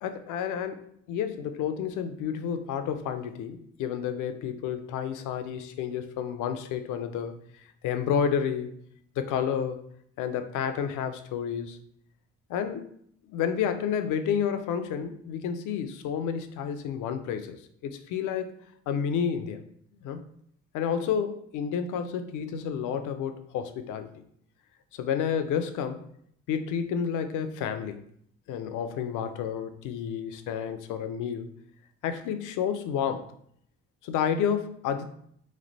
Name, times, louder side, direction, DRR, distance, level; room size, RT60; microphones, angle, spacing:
voice 1, 0.0-7.3 7.8-8.8 9.2-9.8 10.2-11.8 12.5-12.9 13.3-18.5 18.9-19.6 20.0-20.2 20.7-24.1 24.9-26.0 26.5-28.0 28.5-31.5 32.0-33.3 34.0-35.1, left 7 dB, 90° left, 9 dB, 0.5 m, -30 dB
3.3 x 3.2 x 3.9 m, 0.67 s
cardioid pair, 90°, 30 cm